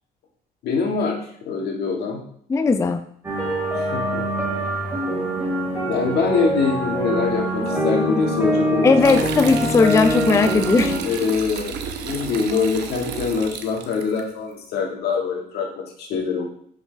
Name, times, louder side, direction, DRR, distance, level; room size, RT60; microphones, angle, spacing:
voice 1, 0.6-2.2 3.7-4.2 5.9-9.2 11.0-16.4, left 5 dB, 75° left, 1 dB, 1.7 m, -24 dB
voice 2, 2.5-3.1 8.8-11.0, left 4 dB, 15° left, 8 dB, 0.4 m, -17 dB
sound 1, 3.2-11.0, right 1 dB, 15° right, 3.3 m, -24 dB
sound 2, 9.0-14.2, right 7 dB, 80° right, 0.9 m, -32 dB
7.7 x 5.9 x 3.3 m, 0.64 s
cardioid pair, 110°, 17 cm